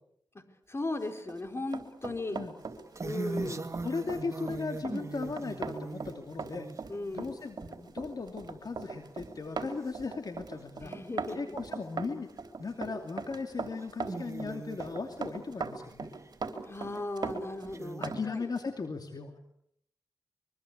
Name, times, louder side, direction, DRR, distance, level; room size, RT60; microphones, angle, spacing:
voice 1, 0.7-2.4 3.0-3.7 6.9-7.4 10.8-11.6 16.7-18.5, left 2 dB, 35° left, 6 dB, 4.4 m, -37 dB
Run, 1.2-18.2 18.6-18.7, right 4 dB, 60° right, 3.7 m, -39 dB
sound 1, 2.6-7.7 8.2-8.6 9.0-9.1 9.3-9.4 9.9-10.0 11.3-11.4 12.4-12.6 13.2-13.3 13.6-15.2 15.8-16.3 17.0-17.1 17.7-18.1, right 3 dB, 40° right, 2.2 m, -40 dB
voice 2, 3.4-6.7 7.1-10.9 11.3-12.3 12.6-16.1 18.0-19.3, left 4 dB, 55° left, 5 dB, 2.7 m, -37 dB
25.0 x 23.0 x 8.6 m, 0.72 s
cardioid pair, 65°, 8 cm